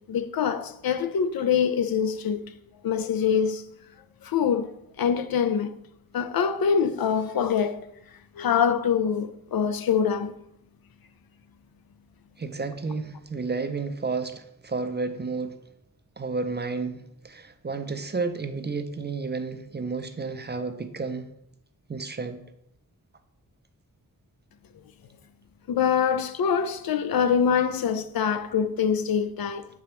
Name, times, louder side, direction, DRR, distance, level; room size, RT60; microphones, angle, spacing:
voice 1, 0.1-2.4 2.8-3.6 4.2-5.7 6.1-7.9 8.4-10.4 25.7-29.7, left 7 dB, 75° left, 0.5 m, -24 dB
voice 2, 12.4-15.6 16.2-21.3 21.9-22.4, right 4 dB, 30° right, 0.4 m, -31 dB
6.7 x 4.8 x 3.0 m
wide cardioid pair, 115°, 36 cm